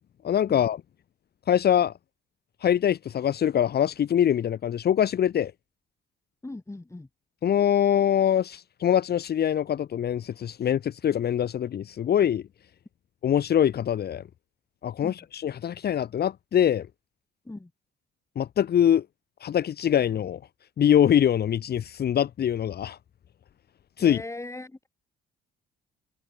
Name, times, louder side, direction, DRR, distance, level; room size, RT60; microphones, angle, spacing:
voice 1, 0.2-0.8 1.5-1.9 2.6-5.5 7.4-12.4 13.2-14.2 14.8-16.9 18.4-19.0 19.4-20.4 20.8-23.0 24.0-24.2, left 9 dB, 55° left, 1.0 m, -23 dB
voice 2, 6.4-7.1 15.0-15.1 17.4-17.7 24.0-24.9, left 2 dB, 15° left, 4.6 m, -39 dB
cardioid pair, 90°, 20 cm